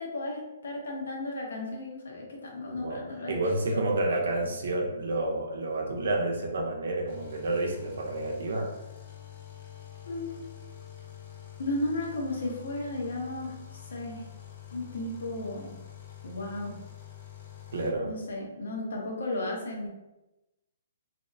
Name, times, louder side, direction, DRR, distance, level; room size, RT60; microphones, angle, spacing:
voice 1, 0.0-3.8 10.1-10.4 11.6-14.2 14.7-15.7 16.2-16.8 18.0-19.9, left 2 dB, 80° left, -1 dB, 0.8 m, -34 dB
voice 2, 3.3-8.7 17.7-18.1, right 2 dB, 75° right, 1 dB, 0.6 m, -29 dB
sound 1, 7.1-17.9, left 11 dB, 50° left, 0.6 m, -46 dB
2.6 x 2.1 x 2.5 m, 0.99 s
hypercardioid pair, 150°, 0 cm